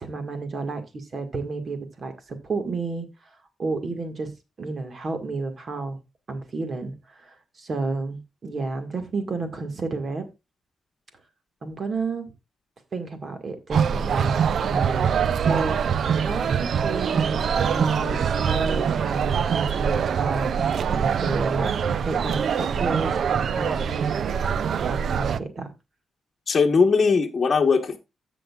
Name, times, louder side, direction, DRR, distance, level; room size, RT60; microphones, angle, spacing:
voice 1, 0.0-3.1 3.6-4.3 4.6-6.0 6.3-10.3 11.6-12.3 12.9-20.5 20.9-24.2 24.8-25.7, right 3 dB, 40° right, 1.8 m, -31 dB
sound 1, 13.7-25.4, right 7 dB, 60° right, 0.4 m, -24 dB
voice 2, 26.5-28.0, left 5 dB, 35° left, 1.2 m, -19 dB
15.5 x 6.3 x 2.4 m
wide cardioid pair, 150°, 0 cm